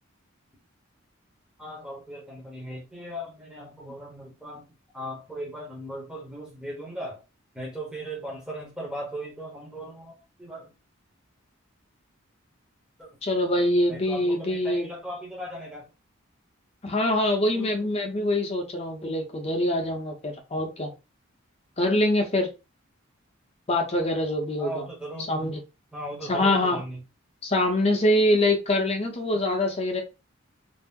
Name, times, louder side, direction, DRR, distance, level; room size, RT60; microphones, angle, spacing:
voice 1, 1.6-4.6 4.9-7.2 7.5-10.7 13.0-13.1 13.9-15.9 17.3-17.9 24.6-25.3 25.9-27.0, right 1 dB, 5° right, 0.8 m, -38 dB
voice 2, 13.2-14.9 16.8-20.9 21.8-22.5 23.7-24.9 25.3-25.6 26.3-26.8 27.4-30.0, left 1 dB, 30° left, 0.7 m, -24 dB
2.6 x 2.0 x 3.6 m
head